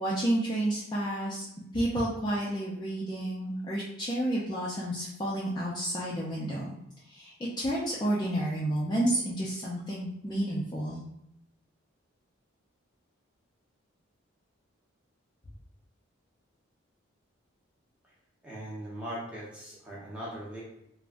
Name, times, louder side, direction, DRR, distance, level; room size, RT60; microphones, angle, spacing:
voice 1, 0.0-1.4 1.7-6.7 7.1-11.0, right 1 dB, 20° left, -6 dB, 0.4 m, -30 dB
voice 2, 18.4-20.6, right 1 dB, 5° right, -7 dB, 0.7 m, -39 dB
3.4 x 2.0 x 2.5 m, 0.79 s
head